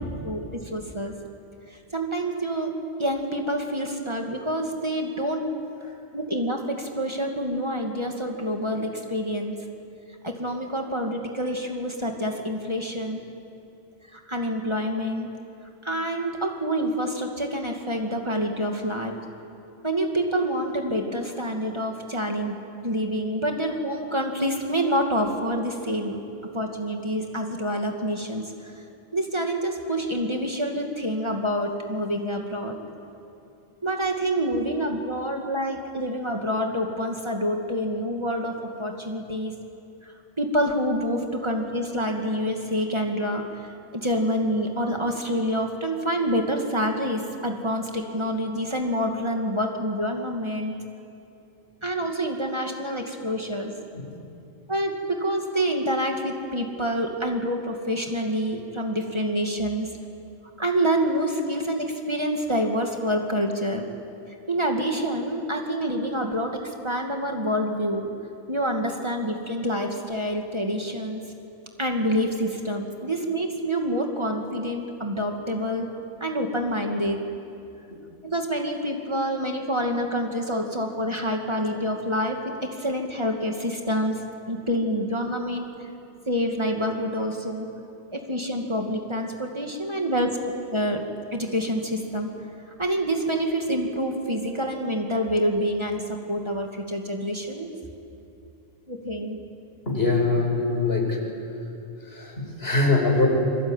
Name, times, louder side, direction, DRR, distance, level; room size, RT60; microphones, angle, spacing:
voice 1, 0.2-1.1 1.9-2.7 3.0-5.4 6.1-9.5 10.2-13.2 14.1-15.3 15.8-19.1 19.8-22.6 22.8-26.2 26.5-28.7 29.1-32.8 33.8-39.5 40.0-43.7 43.9-50.7 51.8-53.7 54.7-59.9 60.6-63.9 64.5-68.1 68.5-71.2 71.8-75.9 76.2-77.2 78.2-84.2 84.5-85.7 86.3-87.7 88.1-90.3 90.7-91.0 91.3-92.3 92.8-96.0 96.3-97.7 98.9-99.4, equal, 25° right, 2 dB, 2.4 m, -27 dB
voice 2, 99.9-101.2 102.0-103.3, left 3 dB, 75° left, 0 dB, 5.8 m, -23 dB
26.0 x 25.0 x 9.1 m, 2.7 s
omnidirectional pair, 1.0 m